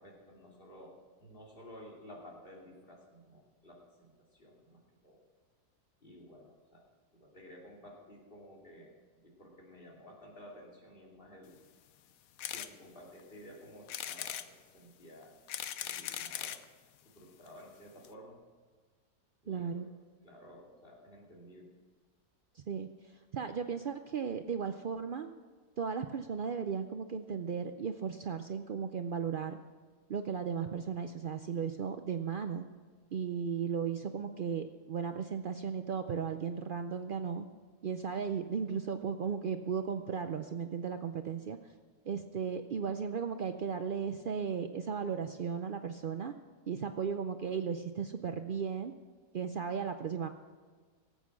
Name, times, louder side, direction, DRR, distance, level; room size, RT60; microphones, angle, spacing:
voice 1, 0.0-5.2 6.0-6.9 7.2-11.6 12.5-15.4 15.8-16.6 17.0-18.4 19.4-19.9 20.2-21.8, equal, 35° left, -3 dB, 3.0 m, -53 dB
sound 1, 12.4-12.7 13.2-13.3 13.9-14.5 15.2-16.7 17.5-17.6 17.7-17.8 18.0-18.1, left 10 dB, 70° left, 1.1 m, -39 dB
voice 2, 19.5-19.9 22.6-25.3 25.8-29.6 30.1-32.6 33.1-37.5 37.8-41.6 42.1-46.3 46.7-48.9 49.3-50.3, right 6 dB, 90° right, 8 dB, 0.4 m, -36 dB
18.0 x 8.4 x 6.1 m, 1.5 s
omnidirectional pair, 1.6 m